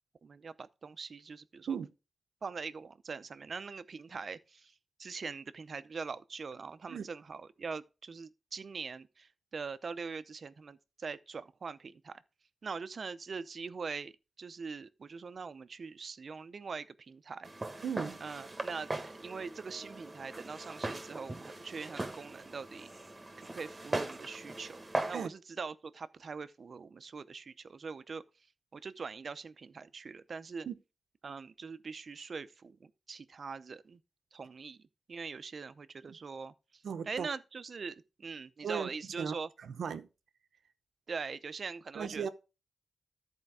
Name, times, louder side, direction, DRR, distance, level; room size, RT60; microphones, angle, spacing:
voice 1, 0.2-1.8 2.4-12.2 12.6-17.5 18.2-22.9 23.4-28.2 28.7-30.7 31.2-34.0 34.3-39.5 41.1-42.3, right 5 dB, 50° right, 0.6 m, -43 dB
Walk footsteps, 17.4-25.2, right 2 dB, 20° right, 1.2 m, -40 dB
voice 2, 17.8-18.2 25.1-25.3 30.7-30.8 36.1-36.2 36.8-37.3 38.6-38.9 39.2-40.1 41.9-42.3, right 7 dB, 90° right, 0.8 m, -37 dB
13.5 x 4.5 x 4.8 m
wide cardioid pair, 140°, 0 cm